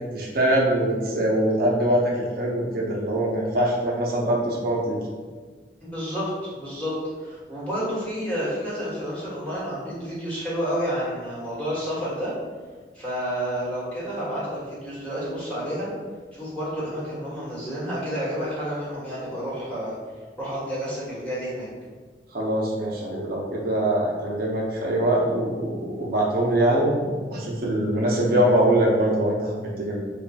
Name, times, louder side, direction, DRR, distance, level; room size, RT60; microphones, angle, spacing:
voice 1, 0.1-5.0 22.3-27.0 27.3-30.0, right 1 dB, 60° right, -3 dB, 0.6 m, -23 dB
voice 2, 5.8-12.3 12.9-15.9 16.3-20.0 20.4-21.7, equal, 10° left, -9 dB, 1.2 m, -30 dB
3.2 x 2.2 x 4.0 m, 1.4 s
head